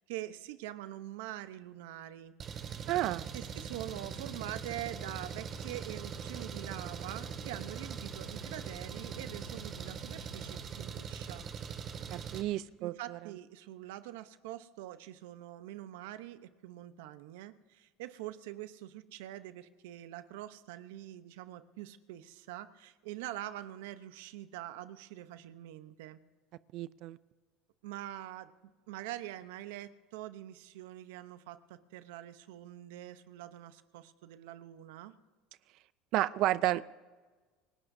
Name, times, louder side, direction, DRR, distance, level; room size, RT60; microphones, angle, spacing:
voice 1, 0.0-2.3 3.3-11.4 12.8-26.2 27.8-28.5 28.9-35.1, right 14 dB, 80° right, 12 dB, 0.8 m, -44 dB
Engine, 2.4-12.4, right 6 dB, 40° right, 2.0 m, -41 dB
voice 2, 2.9-3.3 12.1-13.2 26.7-27.2 36.1-36.8, right 15 dB, 60° right, 17 dB, 0.5 m, -31 dB
28.5 x 17.5 x 2.7 m, 1.3 s
supercardioid pair, 110°, 0 cm